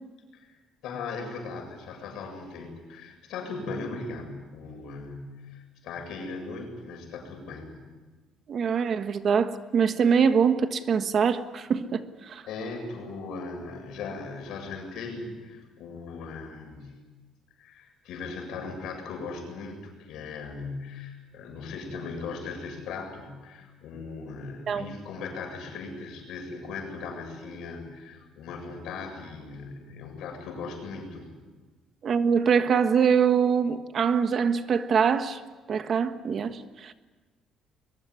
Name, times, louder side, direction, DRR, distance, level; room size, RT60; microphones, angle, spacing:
voice 1, 0.8-7.8 12.5-17.0 17.6-31.3, left 4 dB, 75° left, 7.7 m, -38 dB
voice 2, 8.5-12.4 24.7-24.9 32.0-35.4 35.7-36.9, right 6 dB, 45° right, 1.4 m, -24 dB
23.0 x 21.5 x 9.8 m
cardioid pair, 140°, 0 cm